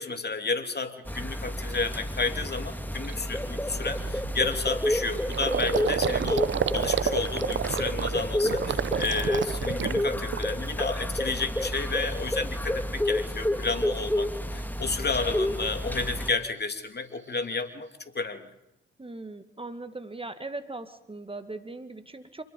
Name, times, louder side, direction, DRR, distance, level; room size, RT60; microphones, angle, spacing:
voice 1, 0.0-17.9 18.1-18.5, left 4 dB, 35° left, 7 dB, 3.0 m, -31 dB
sound 1, 1.1-16.3, left 1 dB, 5° left, 1.9 m, -30 dB
Gurgling, 1.1-1.2 1.7-2.0 2.4-2.5 2.8-10.8 11.2-11.8, right 8 dB, 40° right, 0.9 m, -31 dB
voice 2, 19.0-22.4, right 2 dB, 20° right, 9 dB, 2.0 m, -39 dB
28.5 x 21.0 x 5.4 m, 0.90 s
hypercardioid pair, 45°, 30 cm